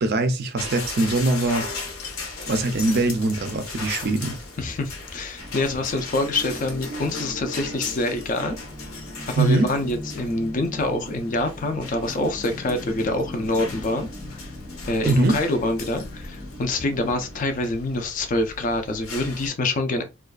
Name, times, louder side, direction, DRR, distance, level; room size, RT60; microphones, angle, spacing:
voice 1, 0.0-1.7 2.5-4.4 9.4-9.7 15.0-15.4, right 2 dB, 50° right, 0.4 m, -22 dB
sound 1, 0.6-19.5, left 3 dB, 80° left, 0.7 m, -37 dB
voice 2, 4.6-8.6 9.3-14.1 14.4-14.5 14.9-20.0, left 2 dB, 40° left, 0.4 m, -26 dB
sound 2, 5.4-17.4, equal, 10° right, 0.7 m, -40 dB
2.4 x 2.2 x 2.2 m
head